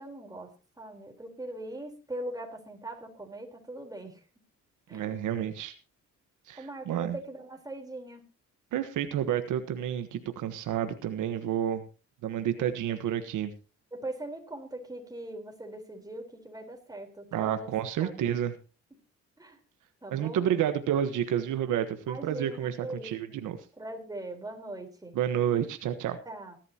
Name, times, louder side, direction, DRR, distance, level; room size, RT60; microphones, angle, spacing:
voice 1, 0.0-4.2 4.9-5.1 6.6-8.2 12.5-13.0 13.9-17.7 18.0-18.3 19.4-19.6 20.0-20.5 22.1-23.4 23.8-25.1 26.3-26.6, right 1 dB, 10° right, 3 dB, 4.1 m, -41 dB
voice 2, 4.9-5.7 6.5-7.2 8.7-11.8 12.2-13.5 17.3-18.5 20.1-23.6 25.1-26.2, right 10 dB, 80° right, 9 dB, 1.3 m, -30 dB
19.0 x 12.0 x 2.9 m, 0.32 s
cardioid pair, 90°, 30 cm